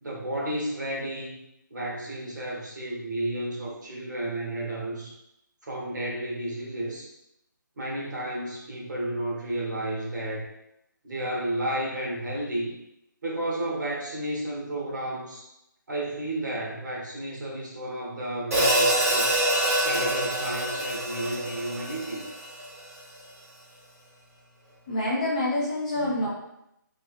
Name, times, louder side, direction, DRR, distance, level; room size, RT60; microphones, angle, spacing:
voice 1, 0.0-1.4 1.7-5.1 5.6-7.1 7.8-10.4 11.0-12.8 13.2-15.5 15.9-19.4 19.8-22.2 25.9-26.2, right 1 dB, 60° right, -3 dB, 1.0 m, -32 dB
Hi-hat, 18.5-22.8, right 1 dB, 45° right, 1.3 m, -25 dB
voice 2, 24.9-26.3, left 1 dB, 20° left, -6 dB, 0.5 m, -26 dB
2.9 x 2.7 x 2.4 m, 0.82 s
hypercardioid pair, 170°, 11 cm